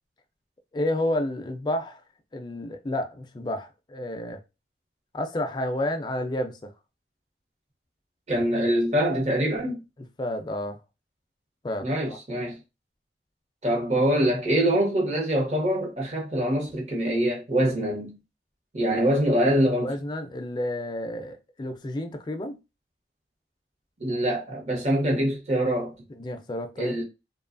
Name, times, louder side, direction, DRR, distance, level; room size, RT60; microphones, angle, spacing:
voice 1, 0.7-2.0 2.3-4.4 5.1-6.7 10.2-10.8 11.6-12.2 19.8-22.6 26.2-26.9, left 1 dB, 25° left, 0.3 m, -30 dB
voice 2, 8.3-9.8 11.8-12.6 13.6-18.2 18.7-19.9 24.0-25.9 26.8-27.0, right 1 dB, 40° right, 0.8 m, -24 dB
2.8 x 2.3 x 2.4 m
head